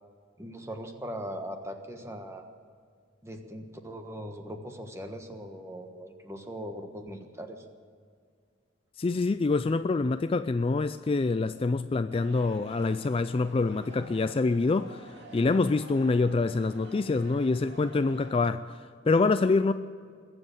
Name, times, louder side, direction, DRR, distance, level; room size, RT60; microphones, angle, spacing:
voice 1, 0.4-2.4 3.2-7.7, equal, 15° right, 1.4 m, -40 dB
voice 2, 9.0-19.7, left 3 dB, 30° left, 0.3 m, -26 dB
sound 1, 12.1-18.3, right 2 dB, 60° right, 2.4 m, -50 dB
21.5 x 7.8 x 7.9 m
head